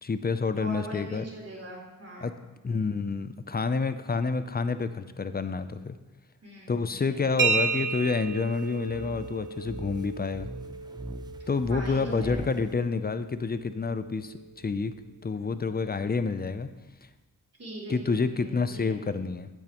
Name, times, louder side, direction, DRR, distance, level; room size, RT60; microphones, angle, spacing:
voice 1, 0.0-1.2 2.2-2.3 2.6-6.0 6.7-10.5 11.5-14.9 15.2-16.7 17.9-19.5, left 4 dB, 30° left, 11 dB, 0.5 m, -28 dB
voice 2, 0.5-2.4 6.4-7.3 11.7-12.4 17.6-19.0, right 1 dB, 45° right, -4 dB, 3.2 m, -41 dB
sound 1, 7.4-14.9, right 4 dB, 75° right, 1.0 m, -34 dB
sound 2, 8.8-12.8, right 2 dB, 10° right, 0.6 m, -41 dB
9.2 x 8.4 x 3.0 m, 1.1 s
cardioid pair, 65°, 33 cm